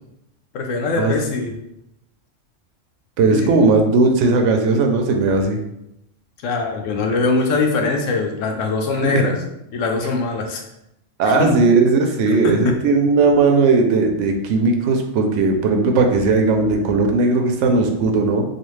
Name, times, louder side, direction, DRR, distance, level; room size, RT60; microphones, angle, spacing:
voice 1, 0.5-1.5 3.3-3.5 6.4-9.3 9.7-10.6 11.2-11.5 12.3-12.7, left 3 dB, 85° left, 3 dB, 1.0 m, -22 dB
voice 2, 3.2-5.6 9.0-9.2 11.2-18.4, right 3 dB, 75° right, 4 dB, 0.9 m, -17 dB
3.2 x 2.4 x 3.1 m, 0.84 s
omnidirectional pair, 1.3 m